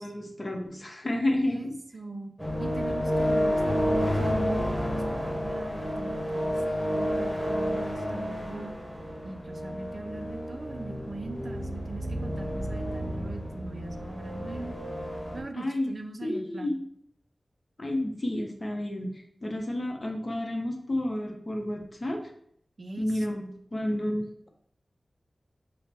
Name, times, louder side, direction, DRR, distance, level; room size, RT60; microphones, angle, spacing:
voice 1, 0.0-1.8 15.5-16.0 16.2-16.8 17.8-22.2 23.0-23.4 23.7-24.5, left 1 dB, 45° left, 2 dB, 0.8 m, -30 dB
voice 2, 1.4-8.7 9.2-14.8 15.3-16.8 22.8-23.6, right 2 dB, 60° right, 6 dB, 0.5 m, -41 dB
sound 1, 2.4-15.4, equal, 5° left, 1.4 m, -30 dB
5.3 x 2.1 x 3.4 m, 0.66 s
wide cardioid pair, 50°, 0 cm